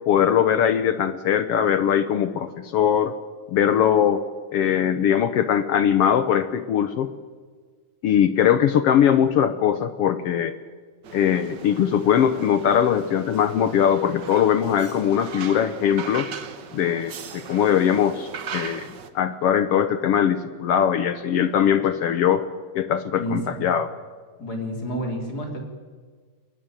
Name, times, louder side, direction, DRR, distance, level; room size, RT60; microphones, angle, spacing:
voice 1, 0.1-3.1 3.5-4.2 4.5-7.1 8.0-10.5 11.1-16.3 16.7-22.5 22.7-23.9, left 9 dB, 70° left, 12 dB, 1.5 m, -21 dB
sound 1, 11.0-19.1, right 7 dB, 55° right, 1.2 m, -39 dB
voice 2, 23.1-23.7 24.4-25.6, equal, 30° left, 2 dB, 4.1 m, -30 dB
22.0 x 19.0 x 9.0 m, 1.5 s
omnidirectional pair, 3.5 m